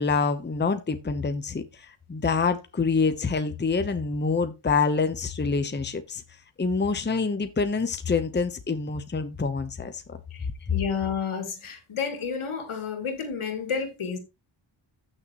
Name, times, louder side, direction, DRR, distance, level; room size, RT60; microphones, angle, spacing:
voice 1, 0.0-6.2 6.6-10.2, left 4 dB, 20° left, 0.9 m, -26 dB
voice 2, 10.3-14.2, left 6 dB, 80° left, 2.7 m, -31 dB
14.0 x 6.6 x 3.1 m
wide cardioid pair, 145°, 49 cm